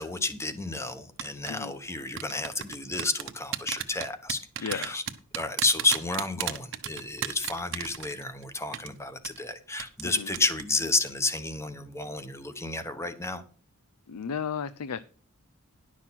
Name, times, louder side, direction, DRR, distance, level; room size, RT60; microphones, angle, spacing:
voice 1, 0.0-5.0 5.4-13.4, left 3 dB, 10° left, 0.9 m, -31 dB
sound 1, 1.2-1.5 2.2-8.4 8.7-8.9 9.3-9.4 9.8-10.1 10.3-10.6 10.9-11.1, right 10 dB, 60° right, 0.9 m, -33 dB
voice 2, 4.6-5.0 10.0-10.3 14.1-15.0, left 6 dB, 85° left, 0.5 m, -34 dB
11.0 x 6.3 x 5.8 m
head